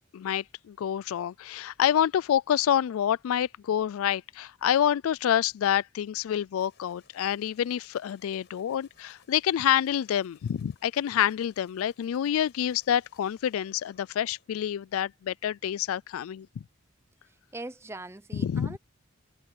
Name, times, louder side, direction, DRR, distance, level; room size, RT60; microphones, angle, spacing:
voice 1, 0.1-16.6 18.3-18.8, left 10 dB, 85° left, 0.3 m, -27 dB
sound 1, 6.5-15.2, left 5 dB, 55° left, 7.7 m, -64 dB
voice 2, 17.5-18.8, right 2 dB, 10° right, 0.6 m, -41 dB
head